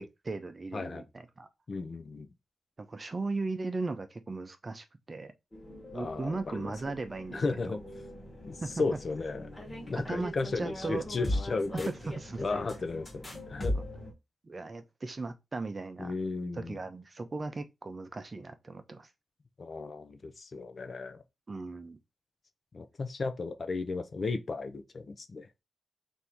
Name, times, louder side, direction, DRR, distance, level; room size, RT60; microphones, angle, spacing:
voice 1, 0.0-1.5 2.9-5.3 5.9-7.8 8.6-8.8 9.9-11.0 11.9-12.4 13.7-13.8 14.4-16.1 16.5-19.1 21.5-22.0, right 3 dB, 35° right, 0.6 m, -37 dB
voice 2, 0.7-1.0 1.7-2.3 5.9-6.7 7.3-7.8 8.4-9.5 9.9-11.9 12.4-13.8 16.0-16.8 19.6-21.2 22.7-25.5, left 3 dB, 45° left, 0.5 m, -34 dB
sound 1, 5.5-14.1, left 1 dB, 25° left, 1.3 m, -39 dB
3.5 x 2.7 x 4.4 m
wide cardioid pair, 110°, 0 cm